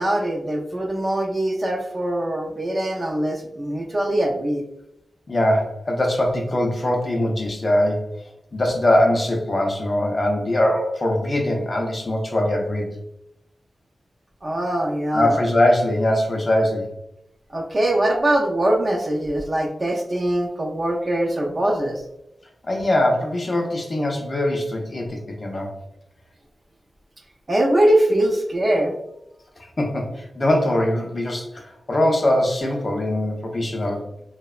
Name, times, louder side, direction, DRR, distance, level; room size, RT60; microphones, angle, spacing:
voice 1, 0.0-4.6 14.4-15.3 17.5-22.0 27.5-28.9, right 1 dB, 30° right, 1 dB, 0.4 m, -22 dB
voice 2, 5.3-8.1 8.5-13.0 15.1-16.9 22.6-25.7 29.8-34.1, left 1 dB, 35° left, 1 dB, 0.4 m, -22 dB
2.8 x 2.0 x 2.3 m, 0.82 s
wide cardioid pair, 145°, 0 cm